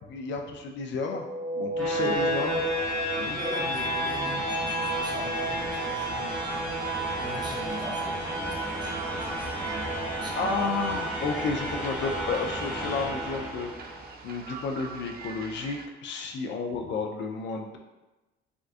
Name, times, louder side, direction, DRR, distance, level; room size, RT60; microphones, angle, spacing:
voice 1, 0.1-1.3 1.5-2.6 3.1-3.4 10.4-14.0 14.2-17.8, left 4 dB, 65° left, 2 dB, 0.4 m, -32 dB
sound 1, 1.1-14.1, right 1 dB, 5° left, 0.9 m, -31 dB
sound 2, 2.9-15.9, right 4 dB, 50° right, 0.4 m, -44 dB
voice 2, 3.2-11.1 11.4-11.5, right 1 dB, 20° right, -2 dB, 0.7 m, -42 dB
3.6 x 2.4 x 2.5 m, 1.1 s
cardioid pair, 90°, 20 cm